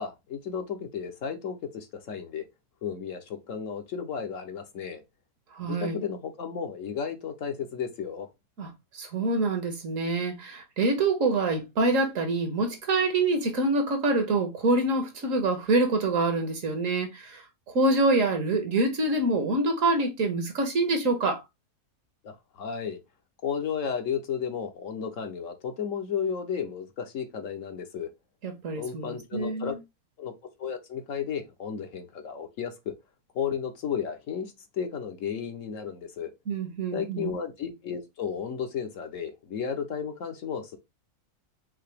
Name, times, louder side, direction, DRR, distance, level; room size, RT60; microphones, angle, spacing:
voice 1, 0.0-2.5 2.8-5.0 5.6-8.3 22.2-23.0 23.4-28.1 28.7-29.7 30.2-30.3 30.6-32.7 33.3-36.3 36.9-40.8, left 7 dB, 60° left, 1.2 m, -33 dB
voice 2, 5.5-6.0 8.6-8.7 8.9-17.4 17.7-21.4 28.4-29.8 36.5-37.3, right 2 dB, 60° right, 1.5 m, -26 dB
5.7 x 2.8 x 3.3 m
omnidirectional pair, 1.6 m